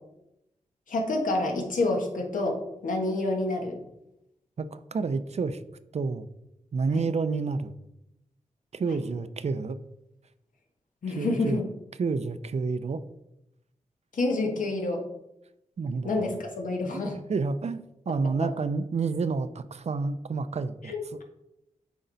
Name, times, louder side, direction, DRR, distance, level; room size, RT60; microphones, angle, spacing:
voice 1, 0.9-3.8 6.9-7.1 11.0-11.6 14.1-15.0 16.0-17.2 20.8-21.2, left 2 dB, 90° left, 1 dB, 1.5 m, -28 dB
voice 2, 4.6-5.6 5.9-6.3 6.7-7.8 8.7-9.8 11.1-11.6 12.0-13.0 15.8-16.3 16.9-21.2, right 4 dB, 55° right, 12 dB, 0.5 m, -29 dB
8.2 x 5.1 x 4.0 m, 0.86 s
wide cardioid pair, 80°, 13 cm